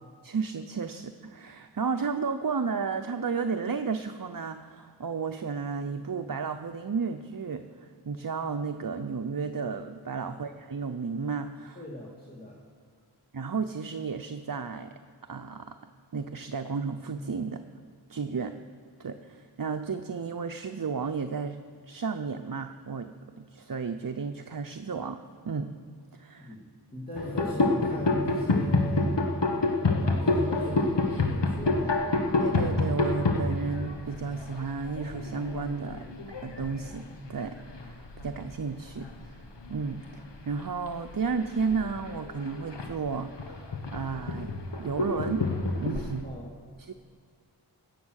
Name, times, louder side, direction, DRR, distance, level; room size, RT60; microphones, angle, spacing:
voice 1, 0.2-11.8 13.3-14.9 15.3-15.8 16.1-17.6 18.1-18.6 19.0-21.6 21.8-25.7 26.2-26.5 32.4-36.1 36.4-39.4 39.7-44.5 44.8-45.5 45.8-46.3 46.8-46.9, right 5 dB, 55° right, 7 dB, 0.7 m, -33 dB
voice 2, 11.8-12.6 26.4-29.2 29.9-32.0 46.2-46.5, left 1 dB, 20° left, -5 dB, 2.5 m, -38 dB
sound 1, 27.2-38.5 38.8-39.3 39.6-46.2, left 2 dB, 85° left, 1.3 m, -28 dB
16.0 x 8.5 x 6.5 m, 2.1 s
wide cardioid pair, 40°, 42 cm